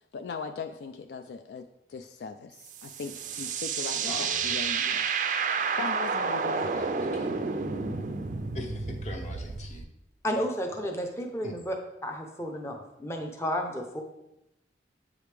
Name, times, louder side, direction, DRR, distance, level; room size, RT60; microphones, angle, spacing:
voice 1, 0.1-5.1 5.8-6.7, left 5 dB, 65° left, 7 dB, 0.3 m, -39 dB
sound 1, 2.7-9.8, right 5 dB, 45° right, 0.4 m, -30 dB
voice 2, 4.0-4.6 6.6-7.3 8.5-9.8 11.4-11.6, left 1 dB, 40° left, 3 dB, 0.9 m, -41 dB
voice 3, 10.2-11.7 12.0-14.0, equal, 15° left, 2 dB, 0.6 m, -32 dB
8.0 x 4.9 x 3.3 m, 0.88 s
head